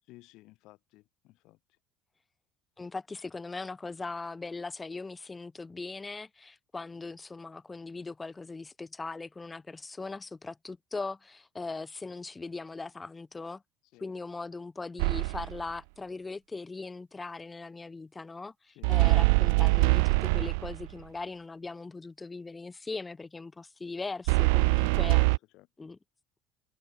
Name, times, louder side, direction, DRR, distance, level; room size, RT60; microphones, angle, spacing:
voice 1, 0.1-1.6 13.9-14.1 18.7-18.9 25.1-25.7, left 19 dB, 65° left, 3.2 m, -54 dB
voice 2, 2.8-13.6 14.0-25.2 25.8-26.0, left 3 dB, 15° left, 3.8 m, -40 dB
sound 1, 15.0-15.6 18.8-20.9 24.3-25.4, right 29 dB, 85° right, 0.8 m, -23 dB
supercardioid pair, 110°, 0 cm